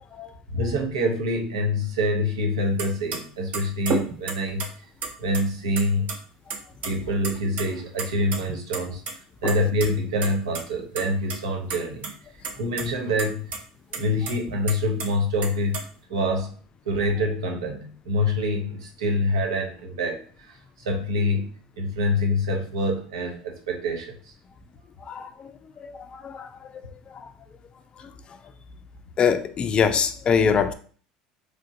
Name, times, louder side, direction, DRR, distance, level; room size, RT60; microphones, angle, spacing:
voice 1, 0.5-4.7 5.2-6.1 6.8-9.0 9.4-12.0 12.6-13.5 13.9-15.8 16.1-16.5 16.9-20.6 20.9-24.3, left 1 dB, 90° right, 0.6 m, -26 dB
sound 1, 2.8-2.9 3.1-3.2 3.5-4.7 5.0-5.8 6.1-6.2 6.5-6.9 7.2-7.6 8.0-9.1 9.5-9.9 10.2-10.3 10.5-10.6 11.0-11.4 11.7-12.1 12.4-12.8 13.2-13.3 13.5-13.6 13.9-15.1 15.4-15.8, right 4 dB, 50° right, 0.6 m, -30 dB
voice 2, 29.2-30.7, left 6 dB, 35° left, 0.3 m, -23 dB
3.0 x 2.4 x 2.6 m
hypercardioid pair, 85°, 3 cm